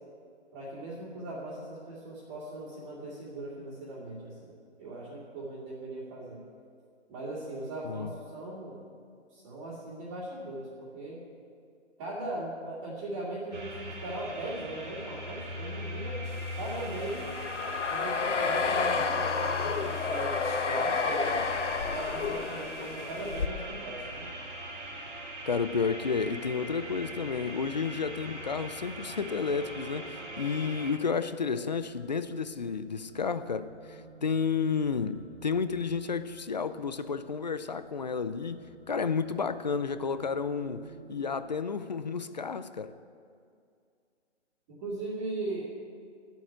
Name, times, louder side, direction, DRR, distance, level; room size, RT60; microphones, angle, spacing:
voice 1, 0.5-6.4 7.1-8.8 9.3-11.2 12.0-16.2 16.6-17.3 17.9-21.4 21.9-24.3 44.7-45.7, right 2 dB, 20° right, -8 dB, 2.2 m, -39 dB
sound 1, 13.5-30.9, equal, 85° right, 2.8 m, -40 dB
sound 2, 16.3-23.5, left 5 dB, 90° left, 1.0 m, -31 dB
voice 2, 25.5-42.9, left 5 dB, 40° left, 13 dB, 0.4 m, -31 dB
sound 3, 28.9-41.4, right 4 dB, ahead, 2.0 m, -53 dB
10.5 x 7.9 x 8.9 m, 2.3 s
hypercardioid pair, 160°, 35 cm